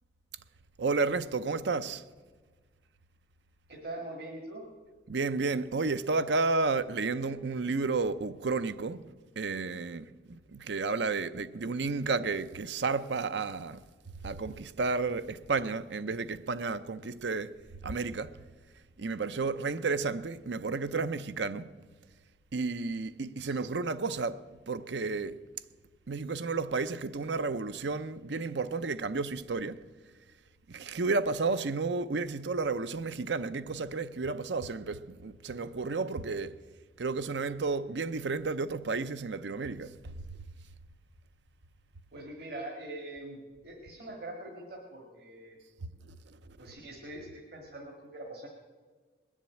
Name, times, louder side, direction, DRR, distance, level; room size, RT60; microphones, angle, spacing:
voice 1, 0.8-2.0 5.1-13.8 14.2-17.5 17.8-18.4 19.0-21.7 22.5-25.4 26.1-29.8 30.7-36.6 37.0-39.9 45.8-46.7, right 4 dB, 80° right, 0.6 m, -32 dB
voice 2, 3.7-4.6 23.5-23.6 42.1-45.6 46.6-48.5, right 1 dB, 60° right, 2.1 m, -43 dB
21.0 x 7.4 x 8.6 m
head